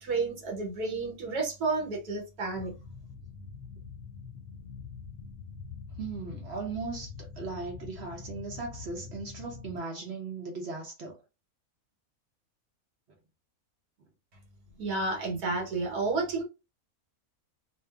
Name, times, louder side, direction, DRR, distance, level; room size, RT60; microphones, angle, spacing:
voice 1, 0.0-2.7 14.8-16.4, right 3 dB, 90° right, 1.4 m, -31 dB
sound 1, 2.5-9.8, left 5 dB, 65° left, 0.6 m, -44 dB
voice 2, 6.0-11.2, right 4 dB, 55° right, 0.8 m, -38 dB
2.6 x 2.4 x 2.3 m
omnidirectional pair, 1.6 m